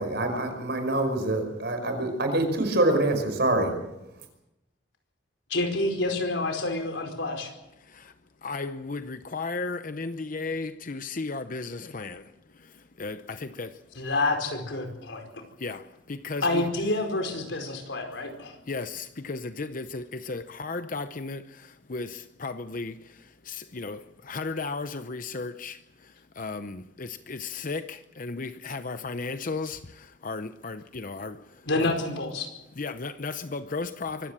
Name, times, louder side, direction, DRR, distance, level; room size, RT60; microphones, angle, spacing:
voice 1, 0.0-3.7, right 2 dB, 60° right, 5.3 m, -25 dB
voice 2, 5.5-7.5 14.0-15.4 16.4-18.5 31.7-32.5, left 2 dB, 75° left, 4.8 m, -28 dB
voice 3, 7.8-8.1 8.4-14.0 15.6-16.7 18.6-31.9 32.8-34.3, left 3 dB, 45° left, 0.7 m, -35 dB
24.5 x 16.5 x 7.5 m
head